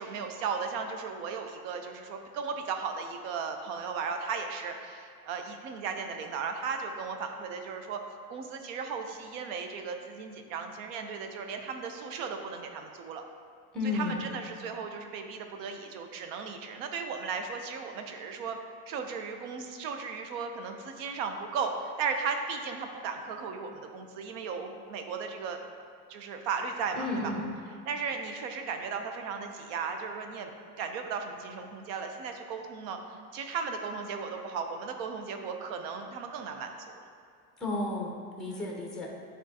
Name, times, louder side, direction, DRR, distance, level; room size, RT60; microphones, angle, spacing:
voice 1, 0.0-8.0 8.3-13.2 13.9-18.6 18.9-25.6 26.1-27.3 27.9-30.5 30.8-37.0 38.5-38.7, right 5 dB, 65° right, 5 dB, 0.7 m, -36 dB
voice 2, 13.7-14.2 26.9-27.5 37.6-39.1, left 2 dB, ahead, -2 dB, 0.6 m, -33 dB
9.5 x 3.7 x 2.8 m, 2.2 s
cardioid pair, 160°, 43 cm